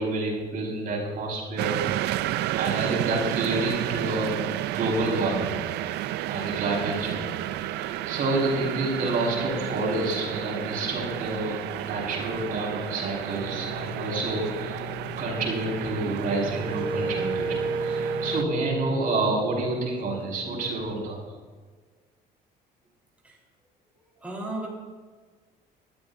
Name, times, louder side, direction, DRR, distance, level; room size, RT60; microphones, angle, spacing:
voice 1, 0.0-1.8 2.5-4.3 4.6-5.6 6.3-7.3 7.7-14.9 15.2-21.4, right 2 dB, 55° right, -2 dB, 4.7 m, -29 dB
sound 1, 1.6-18.4, right 14 dB, 80° right, 0.5 m, -32 dB
voice 2, 2.8-3.1 20.4-20.6 23.2-23.4 24.0-24.7, right 2 dB, 10° right, -4 dB, 3.8 m, -36 dB
sound 2, 13.4-19.0, left 11 dB, 50° left, 0.7 m, -41 dB
Wind instrument woodwind instrument, 16.0-20.2, right 3 dB, 30° right, 1.2 m, -32 dB
20.5 x 13.0 x 2.7 m, 1.4 s
cardioid pair, 110°, 17 cm